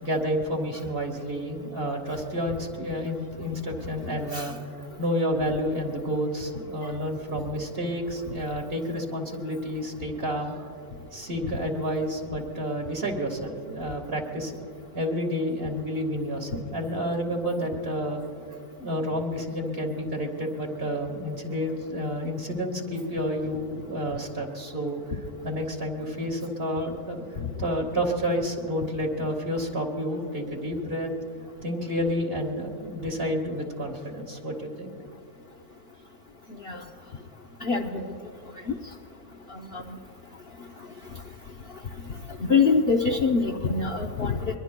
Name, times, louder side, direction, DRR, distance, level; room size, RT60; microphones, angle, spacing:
voice 1, 0.0-4.6 5.0-10.6 11.1-14.6 14.9-18.2 18.8-25.0 25.4-27.2 27.6-31.1 31.6-34.9, equal, 40° right, 1 dB, 1.9 m, -30 dB
voice 2, 37.6-38.1 38.7-38.8 39.7-39.8 42.5-44.6, left 5 dB, 50° left, 1 dB, 0.8 m, -24 dB
23.5 x 22.0 x 2.2 m, 2.4 s
omnidirectional pair, 1.6 m